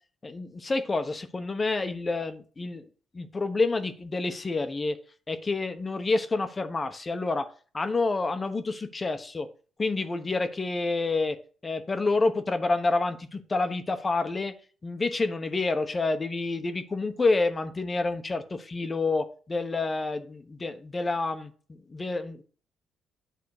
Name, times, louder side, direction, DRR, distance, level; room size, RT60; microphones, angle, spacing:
voice 1, 0.2-2.8 3.1-5.0 5.3-9.5 9.8-11.4 11.6-14.5 14.8-22.4, left 3 dB, 30° left, 8 dB, 1.0 m, -28 dB
9.6 x 3.7 x 6.6 m, 0.40 s
cardioid pair, 90°, 0 cm